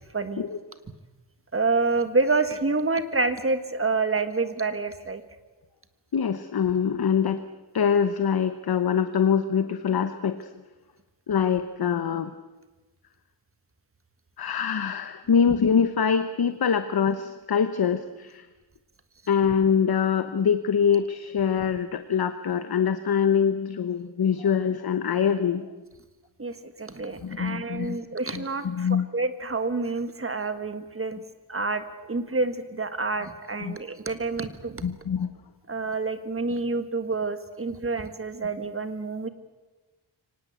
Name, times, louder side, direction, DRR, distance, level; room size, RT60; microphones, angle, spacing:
voice 1, 0.1-0.5 1.5-5.2 26.4-31.2 31.5-34.8 35.7-39.3, right 3 dB, 30° right, 10 dB, 1.6 m, -28 dB
voice 2, 6.1-7.4 7.7-10.5 11.3-12.3 14.4-18.5 19.3-25.6 27.2-28.0 28.3-29.1 33.6-33.8 34.8-35.3, left 7 dB, 55° left, 10 dB, 1.0 m, -24 dB
24.0 x 18.5 x 8.2 m, 1.2 s
wide cardioid pair, 135°, 45 cm